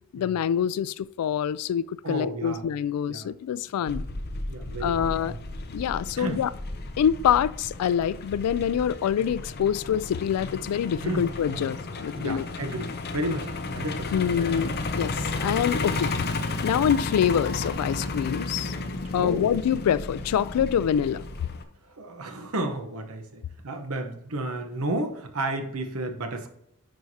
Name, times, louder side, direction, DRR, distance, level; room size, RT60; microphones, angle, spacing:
voice 1, 0.1-4.0 4.8-5.3 5.7-6.5 7.0-12.4 14.1-15.1 15.4-16.2 16.6-18.7 19.1-21.2, left 8 dB, 85° left, 0.3 m, -25 dB
voice 2, 2.0-2.6 3.1-3.3 4.5-5.4 6.1-6.4 11.0-11.7 12.1-14.3 19.2-19.4 21.8-26.5, right 1 dB, 70° right, 0.9 m, -32 dB
Truck, 3.9-21.6, left 3 dB, 50° left, 0.7 m, -33 dB
10.5 x 4.6 x 2.8 m
head